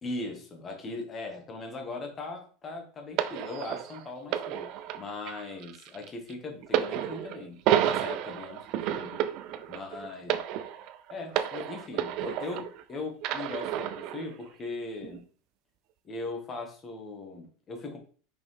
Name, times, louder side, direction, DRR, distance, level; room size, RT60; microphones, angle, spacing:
voice 1, 0.0-4.7 5.0-9.2 9.7-10.4 11.1-15.2 16.0-18.0, left 3 dB, 20° left, 3 dB, 1.4 m, -39 dB
sound 1, 3.2-12.8 13.2-14.2 15.0-15.2, right 11 dB, 40° right, 0.5 m, -31 dB
5.7 x 5.1 x 3.3 m, 0.40 s
supercardioid pair, 165°, 0 cm